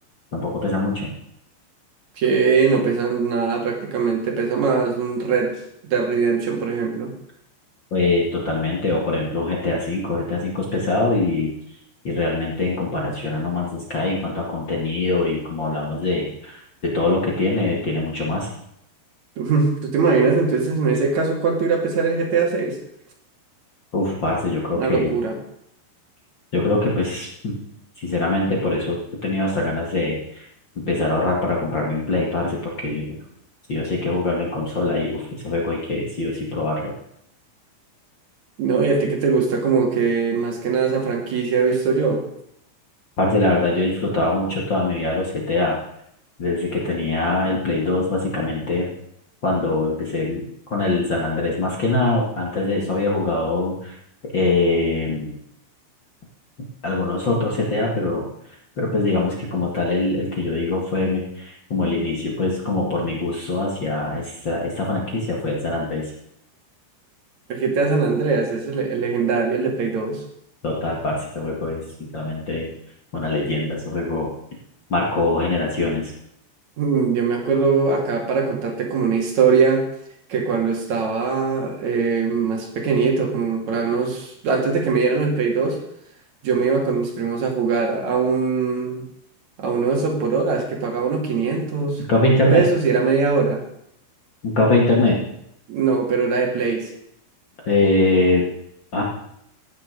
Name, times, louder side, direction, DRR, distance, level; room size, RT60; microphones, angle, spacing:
voice 1, 0.3-1.1 7.9-11.5 12.0-18.5 23.9-25.1 26.5-27.6 28.0-30.4 30.7-33.2 33.7-36.9 43.2-45.8 46.4-48.9 49.4-50.4 50.7-53.9 54.2-55.3 56.8-58.2 58.8-66.1 70.6-72.7 73.1-74.3 74.9-76.1 92.1-92.7 94.4-95.2 97.6-98.5 98.9-99.0, left 2 dB, 50° left, -2 dB, 1.4 m, -23 dB
voice 2, 2.2-7.1 19.4-22.8 24.7-25.4 38.6-42.3 67.5-70.2 76.8-79.9 80.3-85.8 86.4-89.0 89.6-92.0 92.5-93.6 95.7-96.9, right 5 dB, 45° right, 2 dB, 2.8 m, -21 dB
16.5 x 9.7 x 5.3 m, 0.74 s
omnidirectional pair, 5.8 m